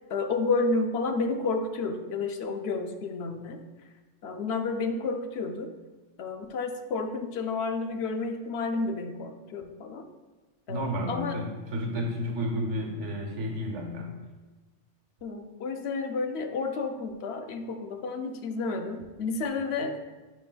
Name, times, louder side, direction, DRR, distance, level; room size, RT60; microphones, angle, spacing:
voice 1, 0.1-3.6 4.2-5.7 6.2-10.1 10.7-11.4 15.2-19.9, left 3 dB, 70° left, 6 dB, 0.8 m, -31 dB
voice 2, 10.7-14.2, equal, 85° right, 2 dB, 1.3 m, -31 dB
9.2 x 5.1 x 2.2 m, 1.2 s
omnidirectional pair, 1.2 m